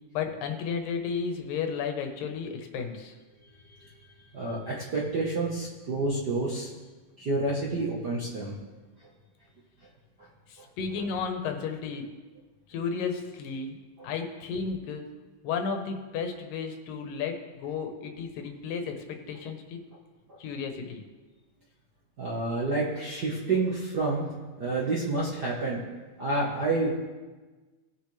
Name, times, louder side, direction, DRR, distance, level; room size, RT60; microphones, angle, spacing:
voice 1, 0.1-3.2 10.5-12.1 12.7-13.8 14.0-15.1 15.4-19.8 20.4-21.0, left 5 dB, 90° left, 5 dB, 2.8 m, -33 dB
voice 2, 4.3-6.7 7.2-8.6 20.3-20.4 22.2-24.3 24.6-25.8 26.2-26.9, right 2 dB, 55° right, -5 dB, 1.1 m, -29 dB
19.5 x 6.7 x 3.3 m, 1.3 s
omnidirectional pair, 3.8 m